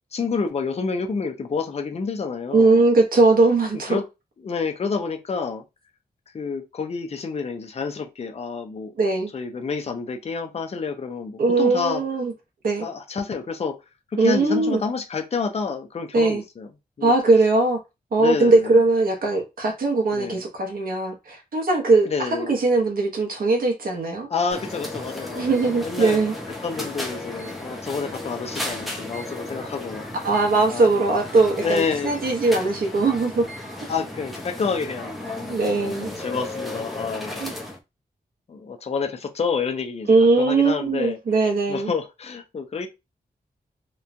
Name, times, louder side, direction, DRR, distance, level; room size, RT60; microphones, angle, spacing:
voice 1, 0.1-2.8 3.7-4.0 4.4-5.6 6.3-8.9 9.3-12.0 12.8-13.8 14.1-16.7 17.0-17.1 18.2-18.8 20.1-20.4 22.1-22.5 24.3-26.2 26.6-30.1 30.7-30.9 31.6-32.1 33.9-37.5 38.5-41.2 41.7-42.9, left 5 dB, 40° left, 0.5 m, -29 dB
voice 2, 2.5-4.0 9.0-9.3 11.4-12.3 12.6-12.9 14.2-14.8 16.1-16.4 17.0-17.8 18.1-24.3 25.3-26.3 30.2-33.5 35.5-36.1 37.4-37.5 40.1-41.9, right 3 dB, 65° right, 0.7 m, -20 dB
sound 1, 24.5-37.8, left 1 dB, ahead, 0.6 m, -35 dB
3.0 x 2.2 x 2.5 m
wide cardioid pair, 105°, 16 cm